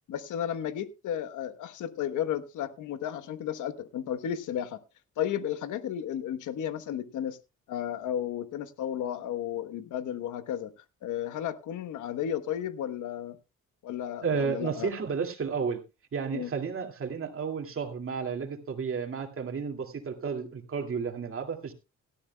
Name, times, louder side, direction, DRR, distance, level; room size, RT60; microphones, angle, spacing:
voice 1, 0.1-4.8 5.2-7.4 7.7-10.7 11.0-13.4 13.8-14.9 16.3-16.5, left 10 dB, 80° left, 1.2 m, -33 dB
voice 2, 14.2-15.8 16.1-21.7, right 6 dB, 45° right, 2.4 m, -32 dB
17.5 x 13.0 x 2.3 m
cardioid pair, 90°, 30 cm